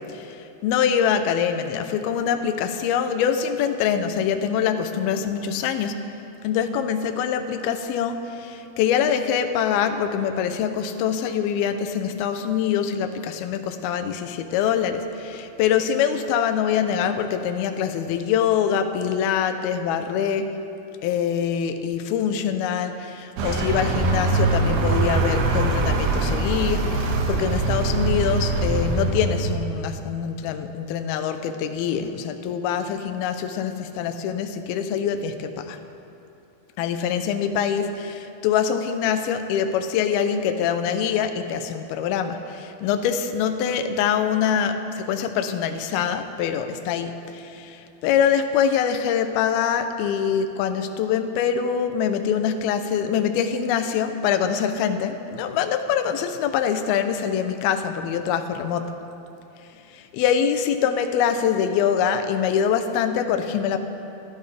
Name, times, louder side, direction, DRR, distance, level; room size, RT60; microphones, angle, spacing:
voice 1, 0.1-6.0 6.4-20.6 21.0-35.8 36.8-58.9 59.9-63.8, left 8 dB, 80° left, 7 dB, 2.6 m, -24 dB
Vehicle, 23.4-29.7, right 3 dB, 85° right, 3.4 m, -23 dB
28.5 x 12.0 x 3.4 m, 2.8 s
omnidirectional pair, 4.6 m